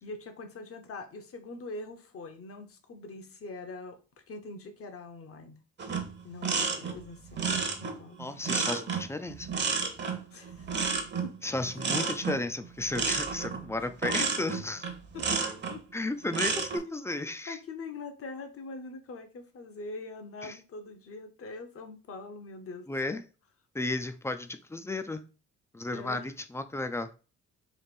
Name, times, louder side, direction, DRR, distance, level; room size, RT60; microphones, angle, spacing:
voice 1, 0.0-4.0 4.3-5.6 6.2-8.2 10.3-10.9 11.2-11.3 11.8-12.0 13.8-13.9 14.2-14.3 15.1-15.4 15.7-16.1 16.4-16.6 16.8-17.2 17.5-23.2 25.9-26.3, left 3 dB, 50° left, 7 dB, 0.9 m, -43 dB
sound 1, 5.8-15.8 16.2-16.8, right 5 dB, 35° right, 0.8 m, -31 dB
voice 2, 8.2-9.5 11.4-14.9 15.9-17.6 20.4-20.5 22.9-23.2 23.7-25.3 25.7-27.1, left 2 dB, 10° left, 9 dB, 0.4 m, -33 dB
3.3 x 2.5 x 4.2 m, 0.35 s
cardioid pair, 90°, 30 cm